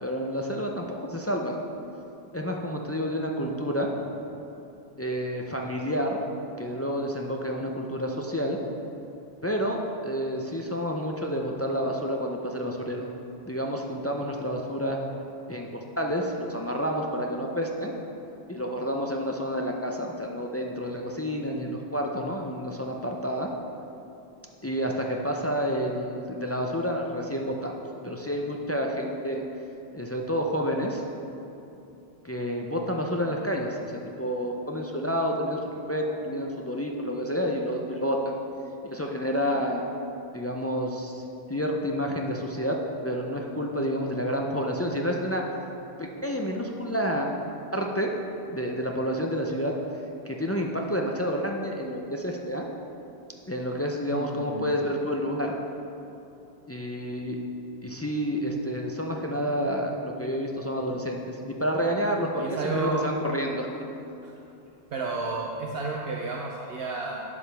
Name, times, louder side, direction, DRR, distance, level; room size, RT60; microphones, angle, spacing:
voice 1, 0.0-1.6 2.3-3.9 5.0-6.2 6.6-8.6 9.4-13.1 13.5-15.0 15.5-17.9 18.5-23.5 24.6-27.7 28.0-29.4 29.9-31.0 32.2-35.6 35.9-38.4 38.8-39.9 40.3-41.2 41.5-42.8 43.0-45.4 46.0-47.4 47.7-48.1 48.5-49.7 50.2-52.7 53.5-55.6 56.7-57.4 57.8-63.7, equal, 25° left, 0 dB, 0.3 m, -29 dB
voice 2, 54.1-54.8 62.4-63.1 64.2-64.3 64.9-67.2, right 3 dB, 70° right, -1 dB, 0.9 m, -31 dB
10.0 x 7.1 x 3.4 m, 2.8 s
omnidirectional pair, 1.1 m